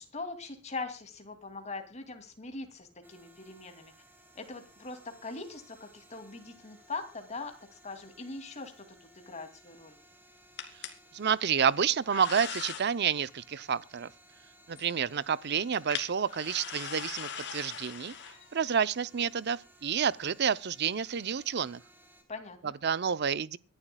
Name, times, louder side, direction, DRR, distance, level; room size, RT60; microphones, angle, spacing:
voice 1, 0.0-3.9 4.3-10.0 22.3-22.7, left 3 dB, 35° left, 2.6 m, -42 dB
sound 1, 3.0-22.2, right 1 dB, 10° right, 2.9 m, -60 dB
sound 2, 10.6-10.9 11.8-12.9 14.8-14.9 15.6-18.8, left 8 dB, 55° left, 2.6 m, -40 dB
voice 2, 11.1-14.1 14.7-18.2 18.5-21.8 22.8-23.6, right 7 dB, 55° right, 0.6 m, -29 dB
24.5 x 11.5 x 2.3 m
head